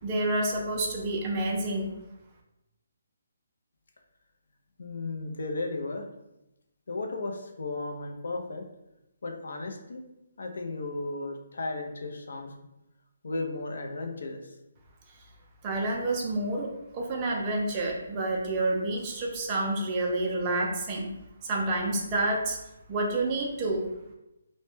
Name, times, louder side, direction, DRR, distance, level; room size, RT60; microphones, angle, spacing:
voice 1, 0.0-1.9 15.6-21.1 21.4-22.6 22.9-23.9, right 2 dB, 20° right, 0 dB, 0.3 m, -29 dB
voice 2, 4.8-6.0 6.9-8.7 9.2-10.0 10.4-12.5 13.2-14.5, left 2 dB, 75° left, 3 dB, 0.4 m, -35 dB
2.1 x 2.0 x 3.1 m, 0.91 s
hypercardioid pair, 170°, 0 cm